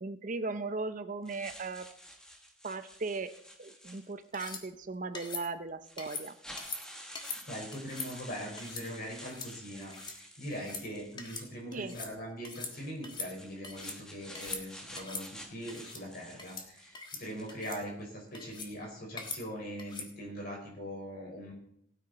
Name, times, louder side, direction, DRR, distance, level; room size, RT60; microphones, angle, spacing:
voice 1, 0.0-1.9 2.6-3.3 3.6-6.3 11.7-12.0, right 3 dB, 40° right, 11 dB, 0.6 m, -37 dB
sound 1, 1.3-4.4 5.3-5.4 5.8-11.6 12.5-17.7, equal, 5° left, 1.3 m, -50 dB
sound 2, 4.3-4.6 5.1-5.4 6.0-6.2 6.6-6.8 7.1-7.4 7.7-8.1 8.6-8.8 9.2-9.5 9.8-10.1 10.5-10.8 11.2-11.5 11.7-12.1 12.4-12.7 13.0-14.0 14.3-14.6 15.0-15.2 15.7-16.0 16.4-16.7 16.9-17.2 17.5-17.8 18.3-18.7 19.2-19.4 19.8-20.1, left 4 dB, 20° left, 1.5 m, -41 dB
voice 2, 7.4-21.5, equal, 45° left, 0 dB, 4.7 m, -41 dB
17.5 x 9.4 x 4.2 m, 0.72 s
head